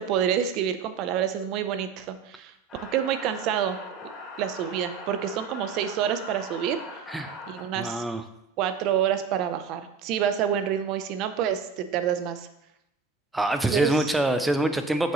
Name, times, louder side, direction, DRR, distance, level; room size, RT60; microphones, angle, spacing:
voice 1, 0.0-2.5 2.9-3.8 4.4-6.8 7.5-8.0 8.6-12.5 13.7-14.1, right 9 dB, 45° right, 10 dB, 0.7 m, -27 dB
sound 1, 2.7-7.6, left 3 dB, 25° left, 1.8 m, -40 dB
voice 2, 7.8-8.2 13.3-15.1, right 1 dB, 5° right, 8 dB, 0.6 m, -25 dB
7.6 x 6.6 x 3.1 m, 0.82 s
supercardioid pair, 130°, 0 cm